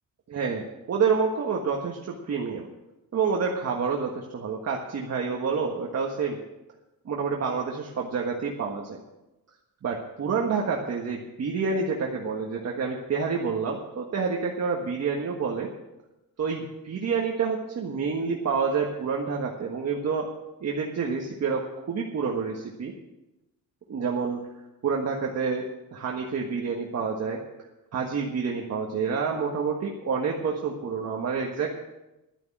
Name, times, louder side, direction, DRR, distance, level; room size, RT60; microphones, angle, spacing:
voice 1, 0.3-2.7 3.1-6.4 7.0-9.0 9.8-15.7 16.4-20.3 20.6-22.9 23.9-24.4 24.8-27.4 27.9-31.8, right 5 dB, 45° right, 0 dB, 1.6 m, -28 dB
11.5 x 11.0 x 7.4 m, 0.99 s
cardioid pair, 140°, 35 cm